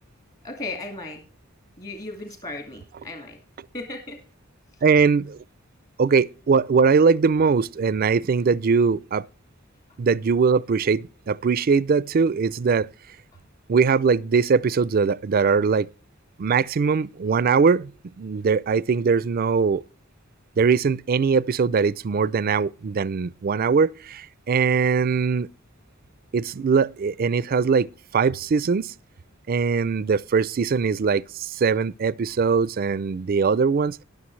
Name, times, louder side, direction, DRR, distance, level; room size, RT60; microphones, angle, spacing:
voice 1, 0.4-1.2 1.8-3.4 3.7-4.2, left 2 dB, 35° left, 1.9 m, -35 dB
voice 2, 4.8-5.4 6.0-9.3 10.0-12.9 13.7-15.9 16.4-19.8 20.6-25.5 26.3-28.9 29.5-34.0, right 5 dB, 45° right, 0.4 m, -21 dB
19.5 x 6.6 x 3.2 m
head